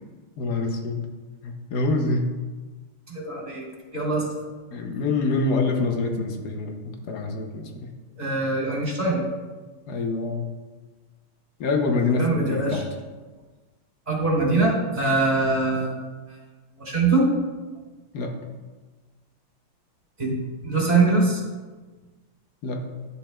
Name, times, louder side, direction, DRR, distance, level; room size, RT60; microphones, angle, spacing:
voice 1, 0.4-1.1 1.4-2.3 4.7-7.9 9.9-10.5 11.6-12.8 18.1-18.4 22.6-22.8, left 3 dB, 65° left, 4 dB, 1.1 m, -26 dB
voice 2, 3.1-3.6 3.9-4.4 8.2-9.2 12.2-12.8 14.1-15.9 16.8-17.3 20.2-21.4, right 3 dB, 20° right, -5 dB, 2.5 m, -23 dB
11.5 x 6.8 x 2.2 m, 1.3 s
omnidirectional pair, 2.3 m